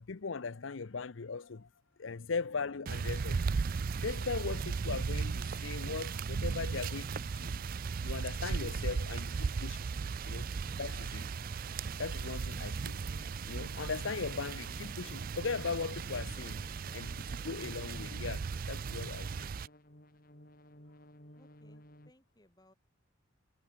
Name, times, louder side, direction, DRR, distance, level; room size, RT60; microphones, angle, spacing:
voice 1, 0.0-1.7 2.0-3.4 4.0-7.6 8.0-9.8 10.3-10.5 10.8-11.3 12.0-13.0 13.5-16.7 16.9-19.5, left 4 dB, 70° left, 0.7 m, -39 dB
sound 1, 2.9-19.7, right 5 dB, 45° right, 0.4 m, -37 dB
sound 2, 7.1-19.5, equal, 5° right, 1.2 m, -52 dB
sound 3, 11.0-22.1, equal, 45° left, 7.4 m, -58 dB
voice 2, 21.3-22.7, left 1 dB, 20° left, 4.2 m, -65 dB
head